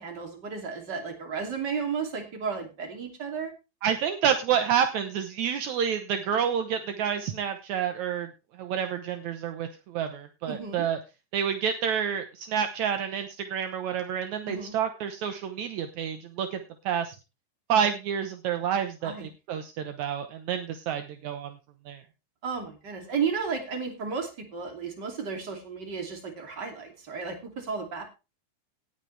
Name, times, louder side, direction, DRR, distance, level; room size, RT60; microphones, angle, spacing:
voice 1, 0.0-3.5 10.4-10.8 14.4-14.7 19.0-19.3 22.4-28.0, right 5 dB, 30° right, 4 dB, 2.8 m, -33 dB
voice 2, 3.8-8.3 8.6-11.0 11.3-16.6 16.9-17.2 17.7-21.5 21.9-22.0, right 8 dB, 75° right, 8 dB, 1.7 m, -29 dB
18.0 x 8.2 x 3.3 m, 0.28 s
omnidirectional pair, 4.6 m